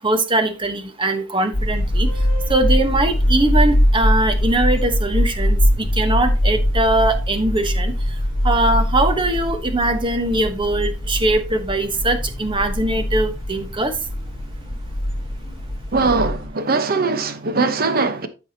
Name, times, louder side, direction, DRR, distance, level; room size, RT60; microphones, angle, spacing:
voice 1, 0.0-2.1 2.5-7.9 8.4-13.9, right 2 dB, 25° right, 1.1 m, -21 dB
sound 1, 1.5-16.5, equal, 20° left, 3.4 m, -22 dB
voice 2, 15.9-18.3, right 4 dB, 50° right, 1.0 m, -20 dB
13.0 x 4.9 x 2.8 m
head